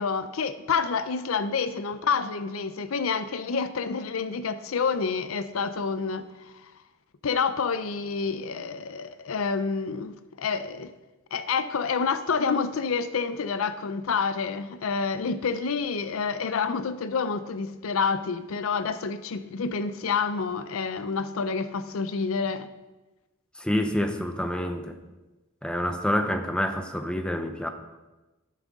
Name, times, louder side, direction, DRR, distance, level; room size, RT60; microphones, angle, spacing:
voice 1, 0.0-6.7 7.2-10.9 11.3-22.7, left 5 dB, 75° left, 0.5 m, -28 dB
voice 2, 23.6-25.0 25.6-27.7, equal, 5° left, 0.7 m, -27 dB
12.5 x 7.5 x 3.7 m
head